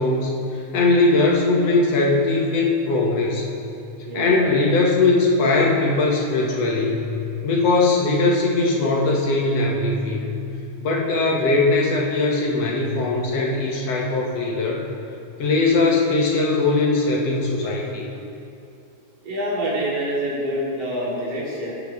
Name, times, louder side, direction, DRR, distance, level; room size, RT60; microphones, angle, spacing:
voice 1, 0.0-3.5 4.1-7.1 7.4-10.3 10.8-14.8 15.4-18.1, left 3 dB, 65° left, -2 dB, 2.2 m, -20 dB
voice 2, 4.1-4.6 19.2-21.7, equal, 75° right, -6 dB, 4.0 m, -26 dB
17.5 x 9.8 x 3.5 m, 2.7 s
omnidirectional pair, 3.3 m